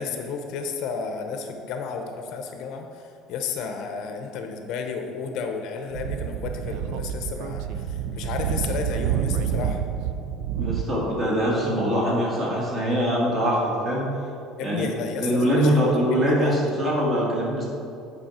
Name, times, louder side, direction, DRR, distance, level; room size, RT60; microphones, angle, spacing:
voice 1, 0.0-9.8 14.6-16.6, left 5 dB, 55° left, 5 dB, 0.7 m, -32 dB
Speech / Wind, 5.9-10.8, right 9 dB, 70° right, 0.4 m, -28 dB
voice 2, 10.6-14.1 14.6-14.9 15.2-17.6, equal, 25° right, -4 dB, 2.0 m, -23 dB
9.2 x 5.2 x 4.3 m, 2.6 s
cardioid pair, 160°, 0 cm